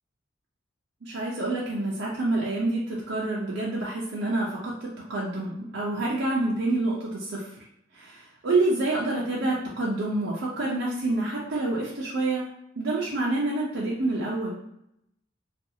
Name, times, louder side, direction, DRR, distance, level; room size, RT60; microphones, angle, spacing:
voice 1, 1.0-7.5 7.9-12.4 12.8-14.6, right 2 dB, 75° right, -5 dB, 0.6 m, -27 dB
2.6 x 2.3 x 2.7 m, 0.76 s
head